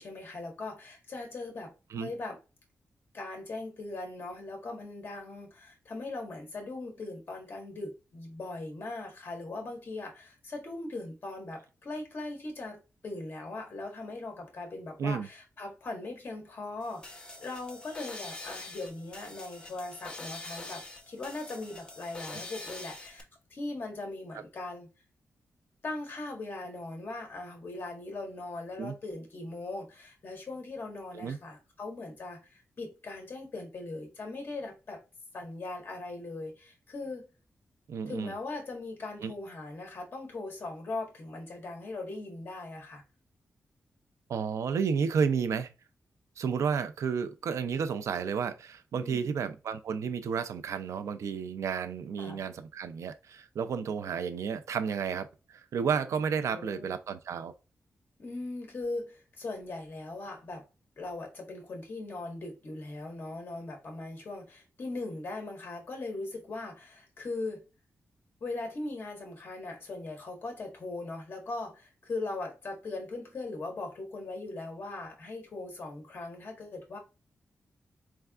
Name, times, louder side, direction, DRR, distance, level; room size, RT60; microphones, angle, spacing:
voice 1, 0.0-2.4 3.1-23.2 23.5-24.9 25.8-35.0 35.3-37.3 38.1-43.0 49.0-49.4 52.2-52.4 56.4-56.9 58.2-60.6 61.0-67.6 68.4-77.0, left 2 dB, 45° left, 1.3 m, -40 dB
sound 1, 16.8-23.2, left 2 dB, 20° left, 0.7 m, -44 dB
voice 2, 37.9-38.3 39.2-39.3 44.3-45.7 46.4-57.5, right 6 dB, 80° right, 0.4 m, -32 dB
4.5 x 3.3 x 2.3 m
wide cardioid pair, 165°, 5 cm